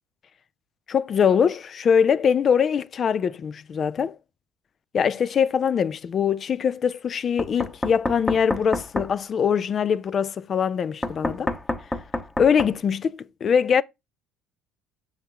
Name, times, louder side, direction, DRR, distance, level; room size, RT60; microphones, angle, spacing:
voice 1, 0.9-4.2 4.9-11.5 12.4-13.8, left 7 dB, 45° left, 0.3 m, -22 dB
Knock, 7.4-9.1 11.0-12.7, left 1 dB, 15° left, 1.0 m, -28 dB
6.6 x 5.7 x 2.9 m
supercardioid pair, 75°, 0 cm